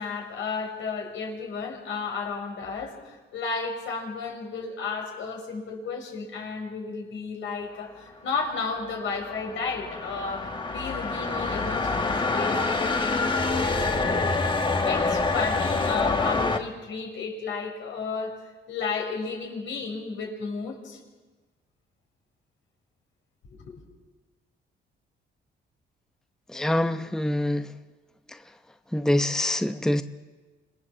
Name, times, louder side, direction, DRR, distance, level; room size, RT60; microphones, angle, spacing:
voice 1, 0.0-14.5 14.8-18.4 18.7-21.0 23.6-23.8, left 4 dB, 75° left, 1 dB, 6.7 m, -33 dB
sound 1, 8.6-16.6, left 3 dB, 25° left, 1.9 m, -26 dB
voice 2, 26.5-27.7 28.9-30.0, left 1 dB, 5° left, 8 dB, 0.9 m, -25 dB
27.0 x 20.5 x 7.4 m, 1.3 s
cardioid pair, 90°, 20 cm